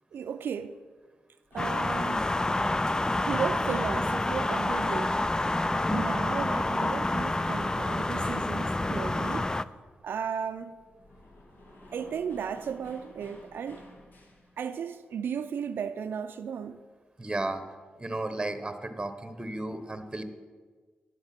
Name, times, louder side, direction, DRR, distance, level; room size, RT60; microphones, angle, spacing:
voice 1, 0.1-0.8 1.5-2.2 3.3-5.2 5.9-9.5 10.0-10.8 11.9-13.9 14.6-16.8, right 7 dB, 70° right, 0.4 m, -35 dB
sound 1, 1.5-5.8 6.0-14.6, left 1 dB, 60° left, 1.8 m, -54 dB
sound 2, 1.6-9.6, left 2 dB, 20° left, 0.4 m, -28 dB
voice 2, 17.2-17.6 18.0-20.2, right 2 dB, 20° right, 1.1 m, -34 dB
10.5 x 6.5 x 5.9 m
supercardioid pair, 45°, 4 cm